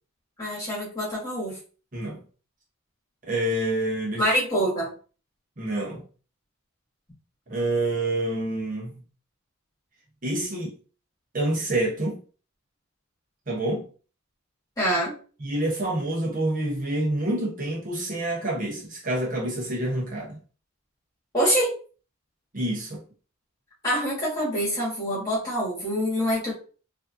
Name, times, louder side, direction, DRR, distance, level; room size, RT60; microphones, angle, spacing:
voice 1, 0.4-1.6 4.2-5.0 14.8-15.2 21.3-21.7 23.8-26.5, equal, 15° left, 2.1 m, -25 dB
voice 2, 3.2-4.3 5.6-6.0 7.5-9.0 10.2-10.7 11.3-12.2 13.5-13.9 15.4-20.4 22.5-23.0, right 1 dB, 40° right, 0.9 m, -27 dB
4.8 x 2.7 x 2.6 m
head